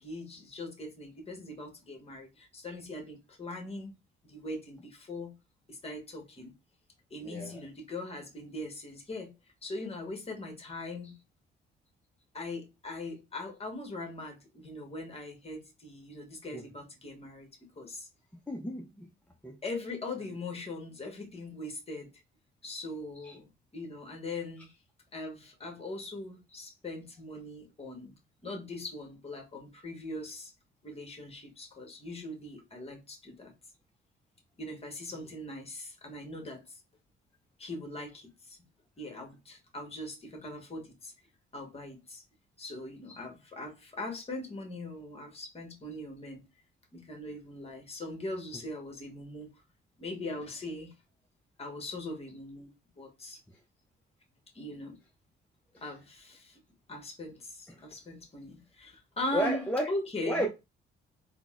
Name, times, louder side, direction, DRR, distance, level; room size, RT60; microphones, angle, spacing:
voice 1, 0.0-3.9 4.3-5.3 5.7-6.5 7.1-9.3 9.6-11.2 12.3-17.5 17.8-18.1 19.6-22.1 22.6-24.7 25.1-28.1 28.4-30.5 30.8-33.5 34.6-36.8 37.6-38.6 39.0-41.1 41.5-42.2 42.6-46.5 46.9-49.5 50.0-50.9 51.6-53.4 54.5-55.0 55.8-56.6 56.9-60.4, left 2 dB, 30° left, 1.1 m, -40 dB
voice 2, 7.2-7.6 16.5-16.6 18.5-19.0 19.4-19.6 23.2-23.3 55.7-55.8 59.3-59.9 60.3-60.5, equal, 5° left, 0.5 m, -32 dB
3.8 x 2.1 x 2.4 m
cardioid pair, 90°, 20 cm